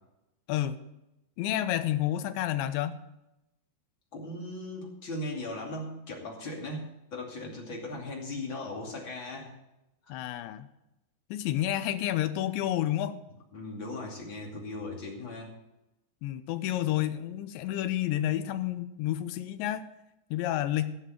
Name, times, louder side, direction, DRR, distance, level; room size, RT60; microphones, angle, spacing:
voice 1, 1.4-3.0 10.1-10.7 11.3-13.2 16.2-19.9 20.3-21.0, left 13 dB, 85° left, 11 dB, 3.0 m, -30 dB
voice 2, 4.1-9.5 13.5-15.5, left 2 dB, 35° left, -1 dB, 2.6 m, -38 dB
16.0 x 7.5 x 6.6 m, 0.90 s
omnidirectional pair, 5.2 m